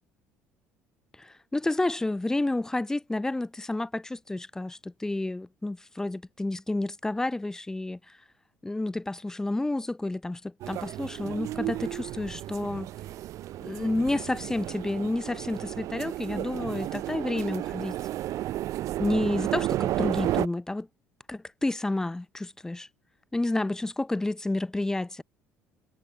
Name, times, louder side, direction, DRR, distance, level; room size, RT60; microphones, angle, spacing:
voice 1, 1.2-8.0 8.6-12.9 13.6-18.0 19.0-20.9 21.3-22.9 23.3-25.2, left 2 dB, 10° left, 0.3 m, -30 dB
sound 1, 10.6-20.5, right 14 dB, 55° right, 0.5 m, -32 dB
figure-of-eight pair, 60°, 7 cm